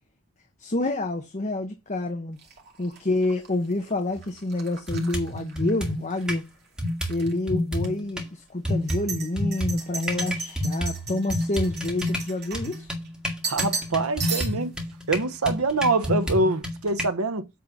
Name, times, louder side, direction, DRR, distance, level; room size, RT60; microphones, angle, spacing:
voice 1, 0.6-2.4 2.8-6.4 7.1-12.9, left 2 dB, 35° left, 1.0 m, -28 dB
sound 1, 2.4-6.3 6.7-7.3 7.8-7.9 8.7-13.1 13.4-13.9 14.2-14.8, right 5 dB, 50° right, 2.5 m, -36 dB
sound 2, 4.2-4.3 4.9-6.4 6.8-8.3 8.6-17.1, left 1 dB, 5° right, 2.0 m, -29 dB
voice 2, 13.4-14.7 15.1-17.5, right 2 dB, 85° right, 0.9 m, -25 dB
8.7 x 3.8 x 7.0 m
head